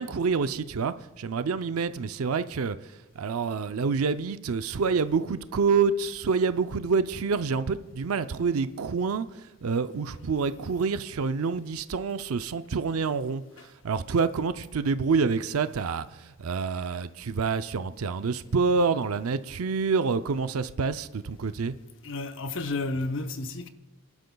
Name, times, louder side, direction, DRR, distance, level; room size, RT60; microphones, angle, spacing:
voice 1, 0.0-2.8 3.1-21.8, right 5 dB, 80° right, 0.5 m, -27 dB
voice 2, 22.0-23.7, left 2 dB, 60° left, 0.8 m, -31 dB
30.0 x 11.5 x 2.3 m
head